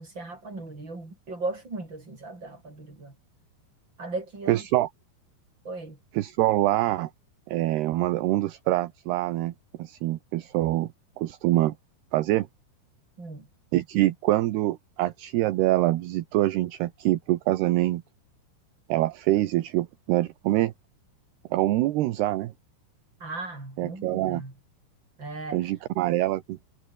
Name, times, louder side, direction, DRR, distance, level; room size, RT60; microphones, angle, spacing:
voice 1, 0.0-3.1 4.0-4.6 5.6-6.0 13.2-13.5 23.2-24.5 25.2-25.6, right 3 dB, 25° right, 7.8 m, -37 dB
voice 2, 4.5-4.9 6.1-7.1 7.5-9.5 9.8-10.9 11.2-11.7 12.1-12.5 13.7-18.0 18.9-20.7 21.5-22.5 23.8-24.4 25.5-26.7, right 16 dB, 75° right, 3.0 m, -25 dB
omnidirectional pair, 5.0 m